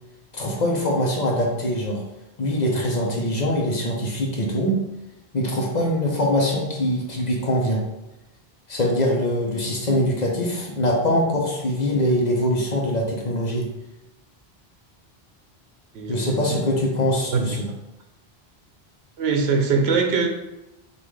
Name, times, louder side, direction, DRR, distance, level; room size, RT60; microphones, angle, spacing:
voice 1, 0.3-2.0 2.4-4.8 5.3-7.8 8.7-13.7 16.1-17.7, equal, 45° left, -2 dB, 0.9 m, -23 dB
voice 2, 15.9-16.6 17.3-17.6 19.2-20.3, right 4 dB, 80° right, 3 dB, 0.9 m, -22 dB
5.4 x 2.6 x 3.2 m, 0.94 s
omnidirectional pair, 1.1 m